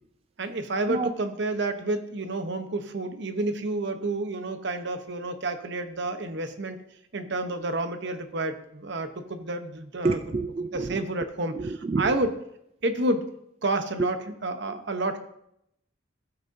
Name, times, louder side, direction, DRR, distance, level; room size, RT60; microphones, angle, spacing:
voice 1, 0.4-6.8 7.1-10.2 10.7-11.5 12.0-12.3 12.8-13.3 13.6-14.1 14.4-15.2, right 2 dB, 60° right, 0.9 m, -29 dB
voice 2, 10.0-11.1 11.5-12.2 14.0-14.1 14.6-14.8, right 3 dB, 30° right, 0.3 m, -28 dB
15.5 x 7.9 x 2.7 m
head